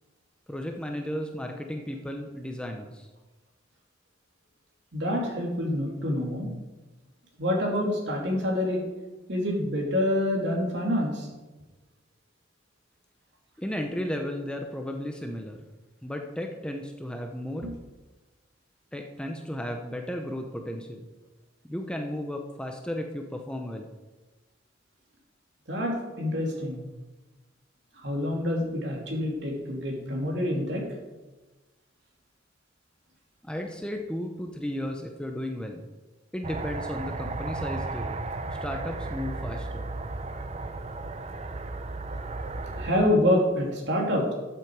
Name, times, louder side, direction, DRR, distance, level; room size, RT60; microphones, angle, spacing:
voice 1, 0.5-3.1 13.6-15.6 16.0-17.7 18.9-21.1 21.6-23.9 33.4-35.9 36.3-38.2 38.6-39.9, left 1 dB, 5° left, 3 dB, 0.7 m, -34 dB
voice 2, 4.9-6.5 7.4-8.8 9.3-11.3 17.6-17.7 25.7-26.8 28.0-30.8 40.8-40.9 42.1-44.3, left 1 dB, 60° right, -1 dB, 2.9 m, -27 dB
sound 1, 36.4-42.9, right 2 dB, 35° right, 0.6 m, -34 dB
13.0 x 7.5 x 4.8 m, 1.2 s
head